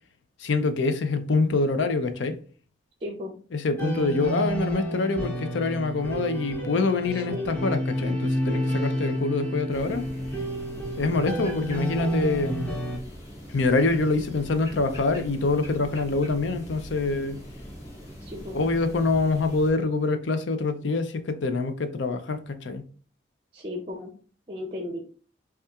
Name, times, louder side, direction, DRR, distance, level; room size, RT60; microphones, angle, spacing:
voice 1, 0.4-2.4 3.5-10.0 11.0-12.7 13.5-17.4 18.5-22.8, left 3 dB, 85° left, 0.5 m, -25 dB
voice 2, 3.0-3.4 7.1-7.5 18.2-18.6 23.5-24.1 24.5-25.0, left 2 dB, 30° right, 0.5 m, -35 dB
sound 1, 3.8-13.0, equal, 10° left, 0.8 m, -30 dB
sound 2, 9.7-19.7, equal, 35° left, 1.7 m, -42 dB
5.4 x 2.4 x 2.3 m
head